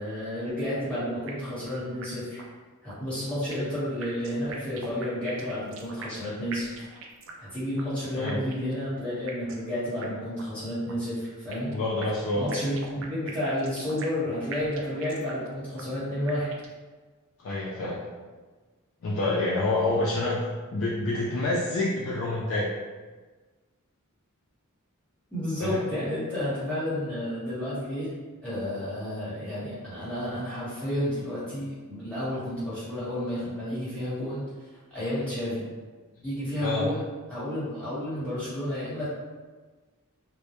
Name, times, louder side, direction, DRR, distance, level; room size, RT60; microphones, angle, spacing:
voice 1, 0.0-2.4 2.8-6.9 7.4-11.7 12.4-16.5 25.3-28.1 28.4-34.4 34.9-35.6 36.2-37.0 37.3-39.1, left 1 dB, 5° left, -12 dB, 1.0 m, -31 dB
sound 1, 1.3-1.7 2.0-2.1 2.4-2.5 2.9-3.7 4.0-6.2 6.5-7.5 7.8-7.9 8.3-8.8 9.3-9.7 10.0-10.1 10.4-10.5 10.9-11.7 12.0-14.2 14.5-15.5 15.8-15.9 16.3-16.8, right 5 dB, 60° right, 0.3 m, -42 dB
voice 2, 11.7-12.5 17.4-18.0 19.0-20.4 20.7-22.7 25.6-25.8 36.6-36.9, left 2 dB, 60° left, -5 dB, 0.3 m, -27 dB
2.1 x 2.0 x 2.8 m, 1.4 s
head